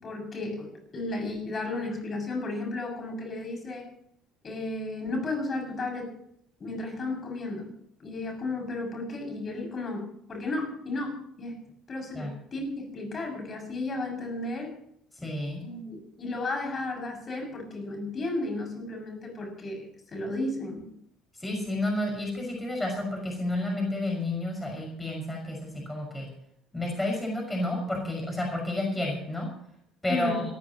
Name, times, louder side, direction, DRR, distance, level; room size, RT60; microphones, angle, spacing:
voice 1, 0.0-3.9 4.4-6.1 6.6-7.7 8.0-10.0 10.3-11.6 11.9-14.7 15.6-20.8 30.1-30.4, left 2 dB, 40° left, 2 dB, 6.8 m, -33 dB
voice 2, 15.2-15.6 21.4-26.3 26.7-29.5 30.0-30.4, left 1 dB, 10° left, 0 dB, 5.8 m, -30 dB
27.0 x 14.0 x 3.0 m, 0.71 s
hypercardioid pair, 60°, 0 cm